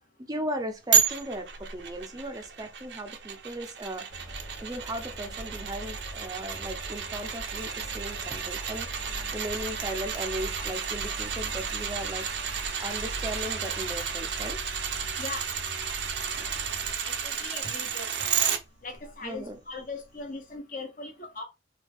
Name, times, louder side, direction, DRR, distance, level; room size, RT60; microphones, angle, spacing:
voice 1, 0.3-4.0 4.6-12.3 12.8-14.6 19.2-19.6, right 1 dB, 20° right, 0.5 m, -37 dB
sound 1, 0.9-18.6 19.0-19.1, right 8 dB, 65° right, 0.6 m, -32 dB
sound 2, 4.1-17.0, right 1 dB, 75° left, 1.1 m, -42 dB
voice 2, 17.0-18.3 18.8-21.4, left 3 dB, 50° left, 1.1 m, -39 dB
4.6 x 2.3 x 3.5 m
head